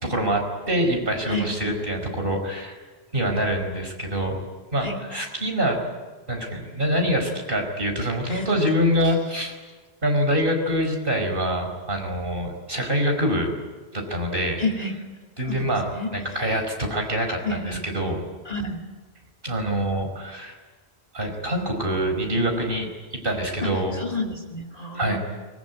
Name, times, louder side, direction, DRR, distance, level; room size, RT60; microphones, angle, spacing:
voice 1, 0.0-2.8 3.1-4.4 4.7-5.8 6.3-9.6 10.0-13.5 13.9-14.6 15.4-15.8 16.1-18.2 19.4-20.6 21.1-24.0 24.9-25.2, equal, 60° right, 3 dB, 5.0 m, -25 dB
voice 2, 14.6-15.0 15.4-15.6 15.9-16.1 17.4-17.8 18.5-18.8 23.6-25.2, left 2 dB, 40° left, 5 dB, 2.6 m, -30 dB
24.0 x 21.0 x 9.6 m, 1.3 s
omnidirectional pair, 1.1 m